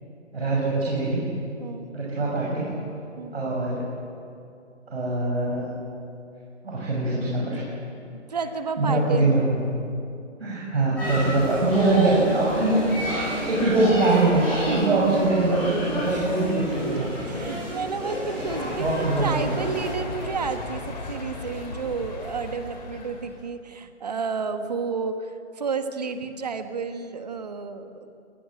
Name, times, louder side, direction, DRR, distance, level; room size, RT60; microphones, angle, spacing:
voice 1, 0.3-1.2 1.9-2.7 3.3-3.9 4.9-5.6 6.6-7.7 8.8-9.6 10.4-17.1 18.8-19.6, right 2 dB, 55° right, -5 dB, 6.4 m, -23 dB
voice 2, 1.6-1.9 3.2-3.3 8.0-9.4 14.7-15.8 16.7-28.1, right 5 dB, 35° right, 8 dB, 1.3 m, -31 dB
sound 1, 10.9-19.9, equal, 5° left, 6.0 m, -31 dB
sound 2, 18.5-23.4, left 2 dB, 35° left, 3.4 m, -36 dB
27.0 x 20.0 x 7.7 m, 2.6 s
hypercardioid pair, 175°, 37 cm